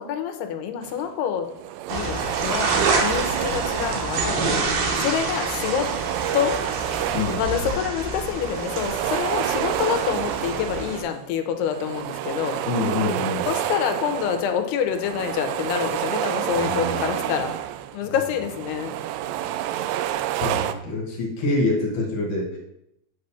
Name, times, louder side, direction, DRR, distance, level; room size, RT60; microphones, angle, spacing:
voice 1, 0.0-1.5 1.9-2.7 3.0-4.7 5.0-5.9 6.3-6.6 7.3-12.6 13.5-17.5 17.9-18.9, left 8 dB, 80° left, 7 dB, 2.7 m, -27 dB
sound 1, 0.8-1.1 1.5-4.6 4.9-8.0 8.3-11.2 11.6-18.0 18.3-20.7, right 12 dB, 85° right, 2.6 m, -29 dB
sound 2, 1.9-11.0, right 3 dB, 70° right, 2.8 m, -27 dB
voice 2, 12.6-13.5 16.5-17.4 18.0-18.1 19.5-19.7 20.4-22.6, left 2 dB, 55° left, -1 dB, 2.7 m, -26 dB
8.7 x 4.0 x 6.9 m, 0.82 s
omnidirectional pair, 4.8 m